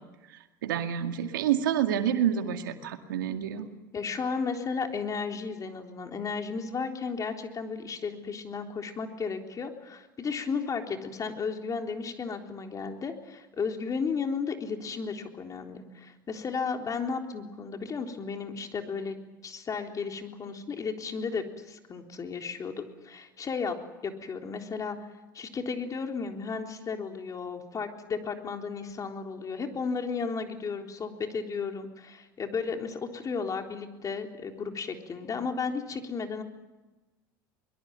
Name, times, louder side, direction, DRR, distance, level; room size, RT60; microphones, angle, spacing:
voice 1, 0.6-3.7, right 9 dB, 85° right, 6 dB, 2.1 m, -28 dB
voice 2, 3.9-19.2 19.4-23.8 24.0-25.0 25.3-36.4, left 5 dB, 35° left, 3 dB, 3.8 m, -34 dB
23.0 x 22.5 x 9.1 m, 1.1 s
hypercardioid pair, 85°, 11 cm